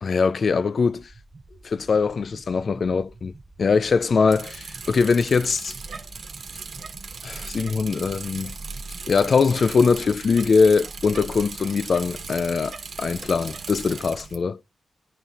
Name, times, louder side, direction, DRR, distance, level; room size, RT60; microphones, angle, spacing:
voice 1, 0.0-1.1 1.6-3.3 3.6-5.7 7.2-8.5 9.1-14.6, left 5 dB, 45° left, 0.3 m, -22 dB
sound 1, 0.9-10.5, right 2 dB, 25° right, 0.7 m, -49 dB
Bicycle, 4.3-14.4, right 4 dB, 60° right, 1.2 m, -37 dB
11.0 x 3.7 x 4.1 m
wide cardioid pair, 180°, 0 cm